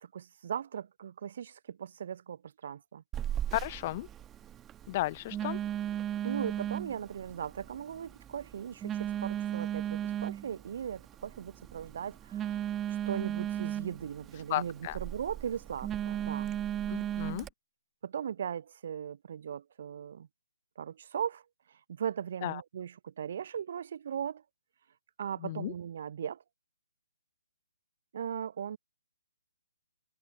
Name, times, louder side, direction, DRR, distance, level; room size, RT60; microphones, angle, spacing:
voice 1, 0.0-3.0 6.2-12.6 12.9-16.5 18.0-20.3 20.8-21.4 21.7-24.4 25.2-26.4 28.1-28.8, right 8 dB, 45° right, 0.7 m, -38 dB
Telephone, 3.1-17.5, right 11 dB, 15° right, 1.2 m, -36 dB
voice 2, 3.5-4.1 4.9-5.6 14.5-15.0 16.9-17.5 22.4-22.6 25.4-25.7, left 16 dB, 30° left, 0.5 m, -34 dB
figure-of-eight pair, 135°, 0 cm